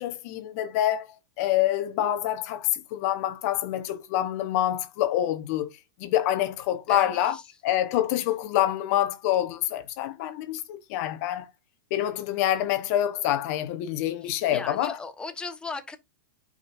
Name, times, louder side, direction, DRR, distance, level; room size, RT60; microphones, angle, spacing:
voice 1, 0.0-5.7 6.0-7.4 7.6-11.5 11.9-15.0, left 12 dB, 50° left, 1.1 m, -26 dB
voice 2, 6.9-7.4 14.2-16.0, left 4 dB, 10° left, 1.3 m, -37 dB
9.6 x 5.2 x 2.6 m
hypercardioid pair, 115°, 10 cm